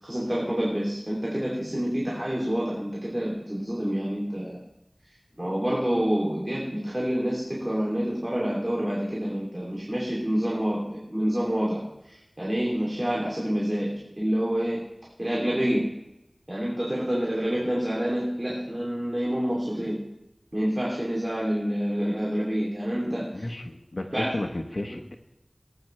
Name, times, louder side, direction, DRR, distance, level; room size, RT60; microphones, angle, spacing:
voice 1, 0.0-4.6 5.4-11.8 12.1-14.8 15.2-15.9 16.5-20.0 20.5-23.5 24.1-24.4 24.9-25.0, equal, 35° right, -4 dB, 2.9 m, -27 dB
voice 2, 23.3-25.1, left 1 dB, 80° left, 4 dB, 1.2 m, -33 dB
18.5 x 9.2 x 3.3 m, 0.89 s
wide cardioid pair, 40°, 0 cm